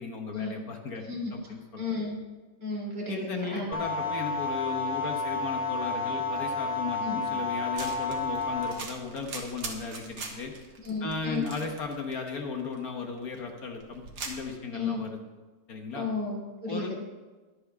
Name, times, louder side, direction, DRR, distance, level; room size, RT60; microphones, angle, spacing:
voice 1, 0.0-1.0 1.3-1.8 3.1-10.5 11.0-15.2 15.7-16.1 16.7-16.9, left 4 dB, 55° left, 3 dB, 1.7 m, -36 dB
voice 2, 1.0-2.2 2.6-3.7 7.0-7.2 10.8-11.5 14.7-15.0 15.9-16.9, left 3 dB, 65° right, -3 dB, 4.1 m, -33 dB
sound 1, 3.7-8.7, left 3 dB, 5° right, 1.2 m, -31 dB
sound 2, 7.8-14.4, right 4 dB, 85° right, 2.2 m, -42 dB
22.0 x 7.8 x 3.6 m, 1.3 s
omnidirectional pair, 2.0 m